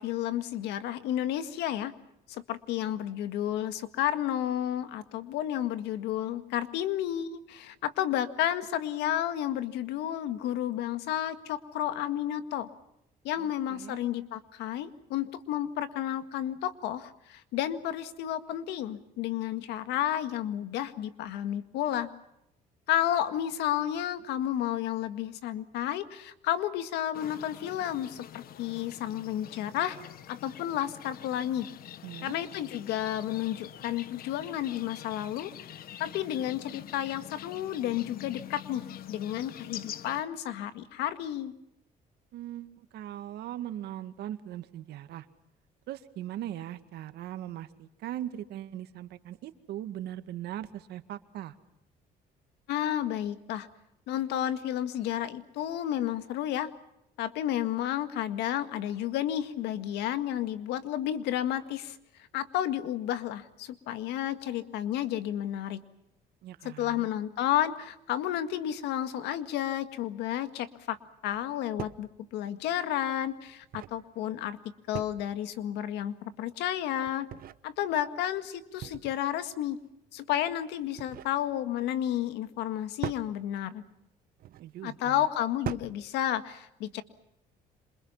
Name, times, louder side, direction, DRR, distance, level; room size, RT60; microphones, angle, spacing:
voice 1, 0.0-1.9 2.3-12.7 13.2-22.1 22.9-30.0 30.3-31.7 32.2-35.5 36.0-41.5 52.7-53.7 54.1-56.7 57.2-62.0 62.3-65.8 66.6-71.0 71.2-74.6 74.9-77.3 77.6-79.8 80.1-83.8 84.8-87.0, left 11 dB, 85° left, 11 dB, 1.9 m, -31 dB
voice 2, 13.4-14.0 32.0-32.4 42.3-45.3 45.9-51.5 66.4-67.1 84.6-85.3, right 12 dB, 75° right, 10 dB, 2.0 m, -40 dB
sound 1, 27.1-40.2, left 11 dB, 60° left, 1.3 m, -45 dB
sound 2, 71.3-71.5 71.8-72.1 73.4-74.0 74.9-75.4 77.0-77.6 78.8-79.3 80.7-81.4 83.0-83.3 84.4-84.7 85.6-86.0, right 12 dB, 60° right, 0.9 m, -39 dB
27.5 x 27.0 x 5.7 m, 0.82 s
cardioid pair, 110°, 17 cm